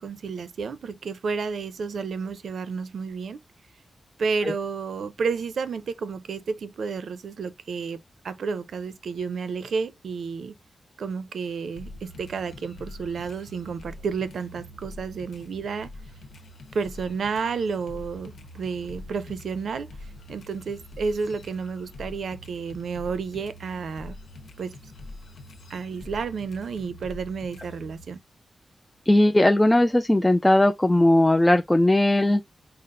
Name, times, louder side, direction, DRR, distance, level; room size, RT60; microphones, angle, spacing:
voice 1, 0.0-3.4 4.2-8.0 8.2-10.5 11.0-15.9 16.7-19.9 20.3-24.1 24.6-24.8 25.7-28.2, right 5 dB, 80° right, 0.6 m, -31 dB
sound 1, 11.8-28.0, left 1 dB, 85° left, 1.0 m, -44 dB
voice 2, 29.1-32.4, left 1 dB, 10° left, 0.3 m, -18 dB
5.6 x 2.1 x 3.7 m
wide cardioid pair, 170°, 0 cm